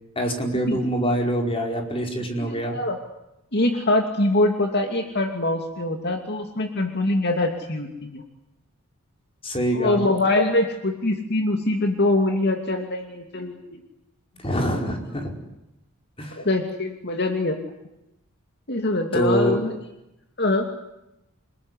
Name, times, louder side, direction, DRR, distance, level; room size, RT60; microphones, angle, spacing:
voice 1, 0.1-2.8 9.4-10.0 14.4-15.3 16.2-16.4 19.1-19.6, equal, 25° left, 3 dB, 4.9 m, -25 dB
voice 2, 2.4-3.0 3.5-8.2 9.7-13.8 16.4-17.6 18.7-19.7 20.4-20.7, left 2 dB, 50° left, 5 dB, 2.7 m, -23 dB
29.0 x 20.5 x 9.8 m, 0.89 s
head